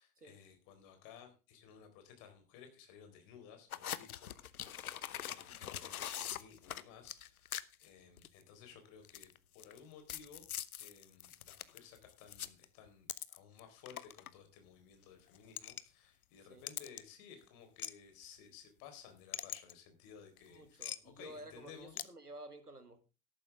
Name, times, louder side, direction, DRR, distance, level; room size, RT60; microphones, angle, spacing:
voice 1, 0.0-10.5 10.8-22.0, left 7 dB, 45° left, 4.1 m, -57 dB
sound 1, 3.7-7.9 8.2-8.4 9.0-9.8 10.1-13.6 13.9-14.3 15.3-15.8 16.7-17.0 17.8-17.9 19.3-19.7 20.8-21.0 22.0-22.1, left 11 dB, 70° left, 0.9 m, -42 dB
voice 2, 20.5-23.0, right 1 dB, 90° right, 1.7 m, -52 dB
13.5 x 11.5 x 3.5 m
figure-of-eight pair, 80°, 45 cm